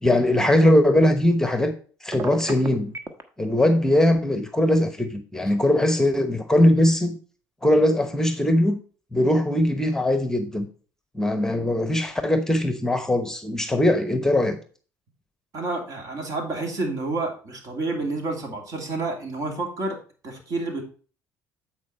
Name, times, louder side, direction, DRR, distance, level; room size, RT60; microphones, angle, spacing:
voice 1, 0.0-1.7 2.0-2.9 3.4-7.2 7.6-8.8 9.1-10.7 11.1-14.6, left 1 dB, 5° left, 8 dB, 0.9 m, -20 dB
Telephone, 2.1-3.2, right 3 dB, 35° right, 1.1 m, -32 dB
voice 2, 15.5-20.8, right 2 dB, 55° right, 2 dB, 2.5 m, -29 dB
8.5 x 4.5 x 4.2 m, 0.40 s
supercardioid pair, 75°, 7 cm